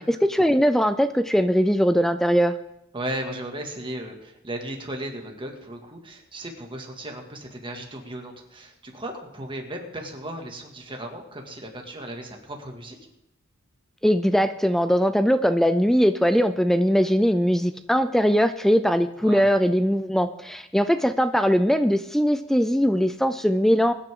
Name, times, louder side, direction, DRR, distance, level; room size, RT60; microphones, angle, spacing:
voice 1, 0.0-2.5 14.0-23.9, equal, ahead, 11 dB, 0.4 m, -21 dB
voice 2, 2.9-13.0 19.2-19.5, right 1 dB, 25° right, 2 dB, 2.1 m, -36 dB
22.0 x 9.9 x 3.7 m, 0.84 s
head